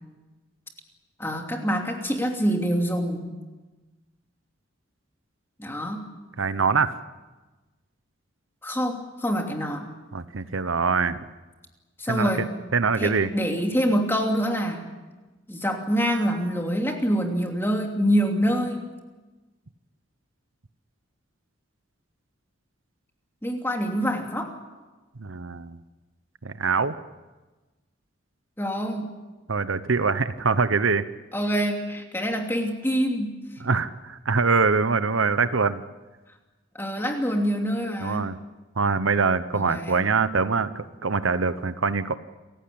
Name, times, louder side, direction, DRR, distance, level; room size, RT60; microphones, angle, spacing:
voice 1, 1.2-3.3 5.6-6.1 8.6-9.9 12.0-12.5 13.0-14.8 15.5-18.9 23.4-24.5 28.6-29.1 31.3-33.4 36.7-38.3 39.5-40.1, equal, 10° left, 2 dB, 2.9 m, -26 dB
voice 2, 6.4-7.0 10.1-11.2 12.1-12.3 12.7-13.3 25.2-25.8 26.4-26.9 29.5-31.1 33.6-35.8 38.0-38.4 38.8-42.1, right 4 dB, 75° right, 13 dB, 0.9 m, -23 dB
28.5 x 16.0 x 8.8 m, 1.2 s
head